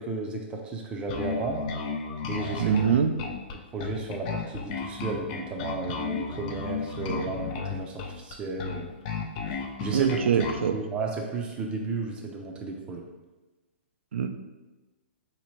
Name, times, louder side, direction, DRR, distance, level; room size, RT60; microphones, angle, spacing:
voice 1, 0.0-1.6 2.3-2.8 3.7-8.9 9.8-10.2 10.7-13.0, right 4 dB, 15° right, 1 dB, 0.5 m, -33 dB
Bass guitar, 1.1-10.7, left 5 dB, 40° left, 0.5 m, -33 dB
voice 2, 2.6-3.2 9.9-10.7 14.1-14.3, right 7 dB, 85° right, 6 dB, 0.4 m, -24 dB
4.0 x 2.8 x 3.0 m, 1.2 s
hypercardioid pair, 145°, 6 cm